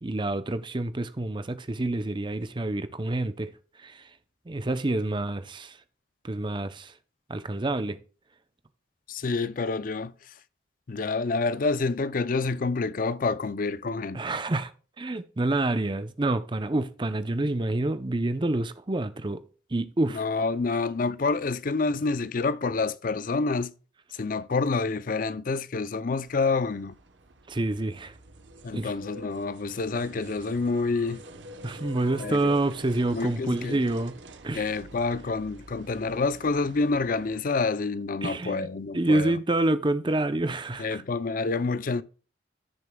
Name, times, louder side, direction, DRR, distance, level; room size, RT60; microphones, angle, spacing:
voice 1, 0.0-3.5 3.8-4.0 4.5-5.8 6.2-6.9 7.3-8.0 14.1-14.7 15.0-19.4 19.7-20.2 27.5-28.1 28.7-28.9 31.6-34.1 34.4-34.7 38.2-38.7 38.9-41.0, right 2 dB, 25° right, 0.6 m, -27 dB
voice 2, 9.1-10.3 10.9-14.3 20.1-23.7 24.1-27.0 28.6-31.2 32.2-32.5 33.1-33.8 34.5-39.4 40.8-42.0, left 3 dB, 50° left, 0.5 m, -28 dB
sound 1, 26.2-37.4, equal, 85° right, 1.0 m, -46 dB
15.0 x 6.7 x 2.3 m
head